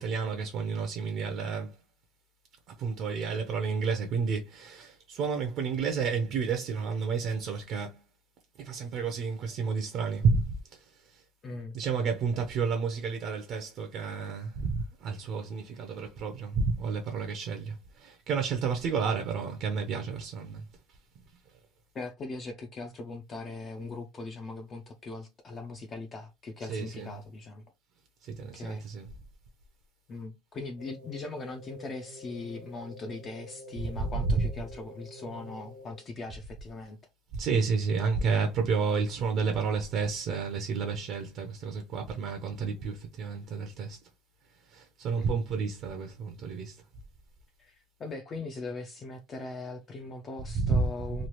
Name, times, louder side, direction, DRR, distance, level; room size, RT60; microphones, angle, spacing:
voice 1, 0.0-1.8 2.8-8.0 8.6-11.2 11.7-20.6 26.7-27.1 28.2-29.1 34.0-34.1 37.3-44.0 44.7-46.8 50.5-50.8 51.2-51.3, right 5 dB, 40° right, 0.5 m, -31 dB
voice 2, 11.4-11.8 19.0-19.2 21.9-27.6 28.4-28.9 30.1-37.0 45.2-45.4 47.6-51.3, left 3 dB, 25° left, 0.4 m, -40 dB
sound 1, 30.8-36.2, equal, 90° right, 1.0 m, -48 dB
3.1 x 2.3 x 2.9 m
cardioid pair, 170°, 0 cm